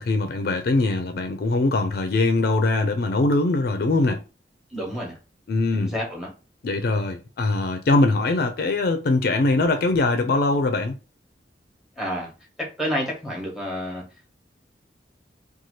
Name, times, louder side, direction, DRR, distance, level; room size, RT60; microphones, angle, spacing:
voice 1, 0.0-4.2 5.5-5.9 6.6-10.9, left 2 dB, 55° left, 0.4 m, -22 dB
voice 2, 4.7-5.2 5.7-6.3 12.0-12.3 12.6-14.0, equal, 5° right, 1.0 m, -29 dB
2.7 x 2.3 x 3.0 m
head